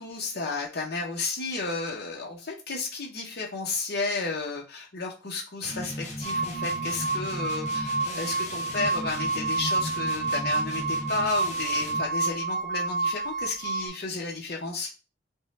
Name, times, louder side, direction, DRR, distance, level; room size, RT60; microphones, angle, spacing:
voice 1, 0.0-14.9, left 3 dB, 55° left, -1 dB, 0.7 m, -33 dB
sound 1, 5.6-12.1, left 1 dB, 35° left, 1.0 m, -37 dB
sound 2, 6.2-13.9, right 3 dB, 60° right, 0.7 m, -29 dB
3.5 x 2.1 x 4.0 m, 0.31 s
head